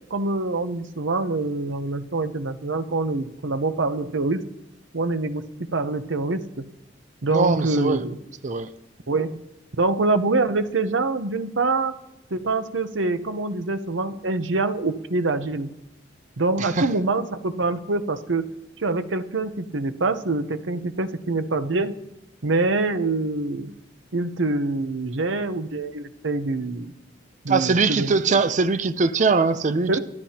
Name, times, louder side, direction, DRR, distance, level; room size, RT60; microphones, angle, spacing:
voice 1, 0.1-4.4 4.9-6.7 7.2-8.2 9.1-9.4 9.8-11.9 12.3-15.7 16.4-21.9 22.4-23.7 24.1-26.9 27.4-28.4 29.9-30.0, right 3 dB, 85° right, 0.8 m, -25 dB
voice 2, 7.3-8.0 8.4-8.7 16.6-16.9 27.5-30.0, right 4 dB, 40° right, 0.5 m, -21 dB
24.0 x 11.5 x 2.9 m
head